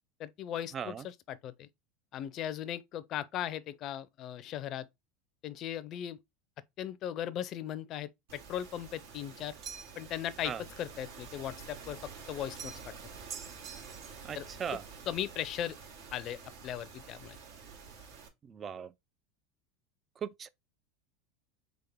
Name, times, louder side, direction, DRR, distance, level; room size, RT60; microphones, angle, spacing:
voice 1, 0.2-1.7 2.1-4.9 5.4-6.2 6.8-9.5 10.0-12.0 12.3-12.9 14.3-14.5 15.1-15.8 16.1-17.4, left 11 dB, 45° left, 0.5 m, -38 dB
voice 2, 0.7-1.1 10.4-10.6 14.2-14.8 18.4-18.9 20.2-20.5, right 7 dB, 30° right, 0.4 m, -38 dB
sound 1, 8.3-18.3, right 5 dB, 75° right, 1.7 m, -49 dB
sound 2, 9.6-10.1 12.6-13.0 13.3-14.3, right 7 dB, 50° right, 1.4 m, -45 dB
3.8 x 3.6 x 3.5 m
supercardioid pair, 110°, 0 cm